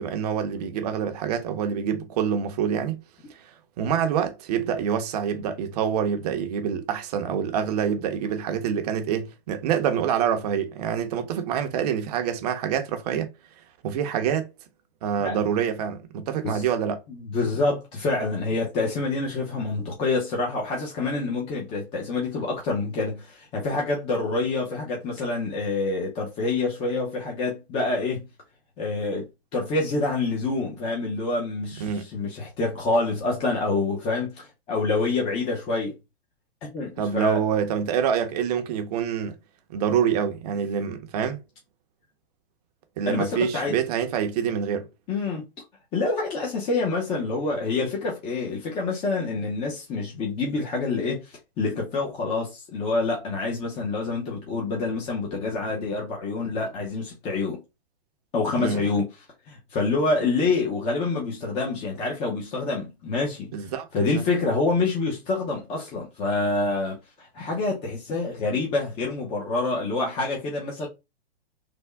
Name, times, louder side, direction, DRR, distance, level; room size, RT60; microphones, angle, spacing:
voice 1, 0.0-3.0 3.3-13.3 13.8-14.5 15.0-17.0 31.8-32.0 37.0-39.4 39.7-41.4 43.0-44.9 58.6-59.0 63.5-64.2, right 8 dB, 40° right, 0.7 m, -26 dB
voice 2, 17.1-28.2 28.8-35.9 36.7-37.4 43.1-43.8 45.1-45.4 45.9-57.6 58.3-59.1 59.5-63.5 63.9-70.9, left 3 dB, 20° left, 0.7 m, -27 dB
3.4 x 2.2 x 3.3 m
hypercardioid pair, 145°, 31 cm